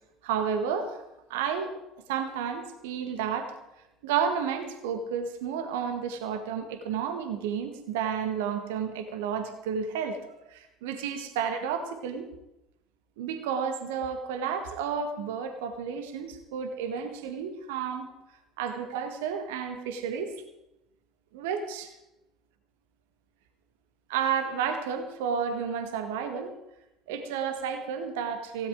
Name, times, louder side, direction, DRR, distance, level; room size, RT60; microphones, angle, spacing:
voice 1, 0.2-1.0 1.3-1.7 2.1-3.5 4.0-12.3 13.2-18.1 18.6-20.3 21.3-21.9 24.1-26.5 27.1-28.7, right 7 dB, 65° right, 7 dB, 1.6 m, -31 dB
16.5 x 16.5 x 3.7 m, 0.89 s
figure-of-eight pair, 60°, 0 cm